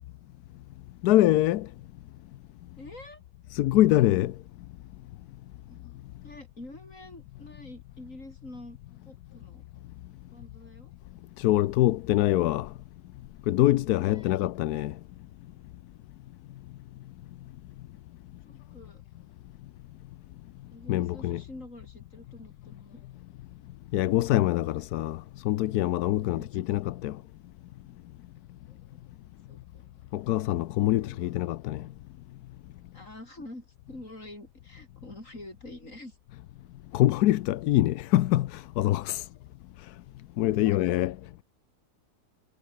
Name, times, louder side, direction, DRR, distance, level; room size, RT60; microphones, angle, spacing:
voice 1, 1.0-1.7 3.5-4.3 11.4-12.7 13.5-14.9 20.9-21.4 23.9-27.2 30.1-31.8 36.9-39.2 40.4-41.1, left 15 dB, 75° left, 1.1 m, -24 dB
voice 2, 2.8-3.2 5.7-5.8 6.2-8.8 9.0-9.6 10.3-10.9 13.9-14.4 18.4-19.0 20.7-23.0 26.2-26.6 28.7-29.0 29.5-30.2 30.6-31.4 32.9-36.2 39.1-39.2 40.6-40.8, left 1 dB, 45° left, 8.0 m, -47 dB
omnidirectional pair, 1.8 m